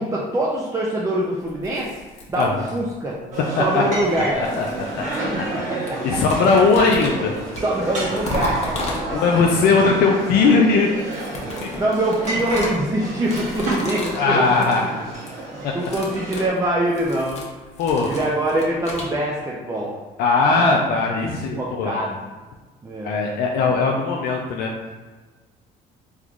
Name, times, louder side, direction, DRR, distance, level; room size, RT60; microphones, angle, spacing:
voice 1, 0.0-1.9 2.3-3.2 3.6-4.4 5.3-5.6 5.9-6.2 7.6-9.2 11.8-14.5 15.5-17.4 18.0-20.0 20.5-20.9 21.6-22.2 22.8-23.2, right 1 dB, 20° right, -4 dB, 0.4 m, -24 dB
sound 1, 1.5-3.0 4.0-5.6 5.9-9.5 10.9-14.3 14.5-14.8 15.1-15.4 15.7-19.1, left 1 dB, 40° left, 0.9 m, -33 dB
sound 2, 3.3-16.5, right 2 dB, 45° right, 1.3 m, -30 dB
voice 2, 4.4-4.7 5.8-7.3 9.1-10.9 11.6-11.7 14.1-15.1 15.6-15.7 17.8-18.1 20.2-22.0 23.0-24.7, left 4 dB, 70° left, 0 dB, 0.4 m, -19 dB
3.6 x 3.0 x 2.4 m, 1.3 s
cardioid pair, 110°, 17 cm